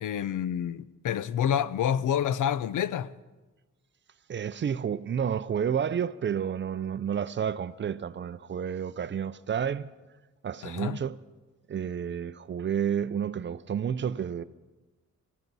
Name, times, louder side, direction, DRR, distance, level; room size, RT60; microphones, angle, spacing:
voice 1, 0.0-3.1 10.6-11.0, left 9 dB, 85° left, 0.6 m, -28 dB
voice 2, 4.3-9.9 10.4-11.2 11.7-14.4, right 8 dB, 40° right, 0.4 m, -30 dB
23.5 x 15.0 x 4.0 m
wide cardioid pair, 150°, 30 cm